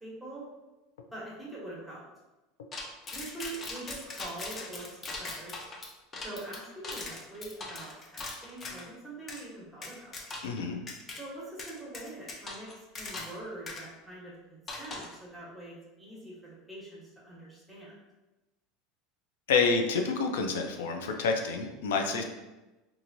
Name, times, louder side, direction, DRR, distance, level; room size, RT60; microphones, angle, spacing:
voice 1, 0.0-0.4 1.1-2.1 3.1-5.6 6.2-10.2 11.1-12.7 13.0-18.0, right 2 dB, 5° right, -6 dB, 1.0 m, -44 dB
sound 1, 2.7-8.9 9.3-9.4 9.8-10.6 10.9-11.2 11.6-13.4 13.7-13.8 14.7-15.2, left 3 dB, 30° left, 0.6 m, -40 dB
voice 2, 10.4-10.8 19.5-22.2, left 4 dB, 90° left, 4 dB, 0.4 m, -28 dB
2.9 x 2.5 x 2.6 m, 1.1 s
supercardioid pair, 115°, 0 cm